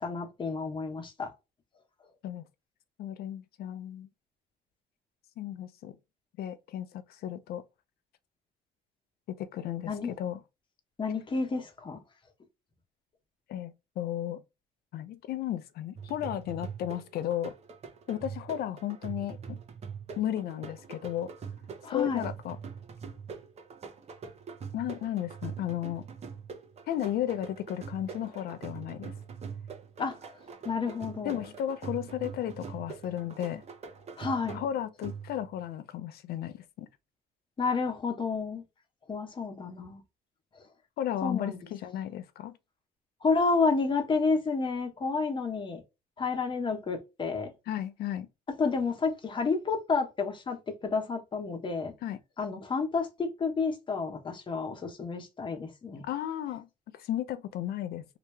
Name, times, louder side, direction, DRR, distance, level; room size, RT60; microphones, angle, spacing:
voice 1, 0.0-1.3 9.9-10.1 11.0-12.0 21.8-22.3 30.0-30.2 30.6-31.4 34.2-34.6 37.6-38.6 39.1-40.0 41.2-41.6 43.2-45.8 46.2-47.5 48.6-51.9 52.4-56.0, left 4 dB, 30° left, 1.1 m, -30 dB
voice 2, 3.0-4.1 5.4-6.0 6.4-7.6 9.4-10.4 13.5-14.4 14.9-17.5 18.1-19.6 20.2-21.3 21.9-22.6 24.7-26.1 26.9-29.1 31.2-33.6 34.5-36.9 41.0-42.6 47.7-48.3 52.0-52.2 56.0-56.7 56.9-58.1, left 11 dB, 65° left, 0.6 m, -34 dB
sound 1, 15.9-35.6, right 6 dB, 40° right, 0.9 m, -43 dB
3.0 x 2.9 x 3.2 m
cardioid pair, 110°, 17 cm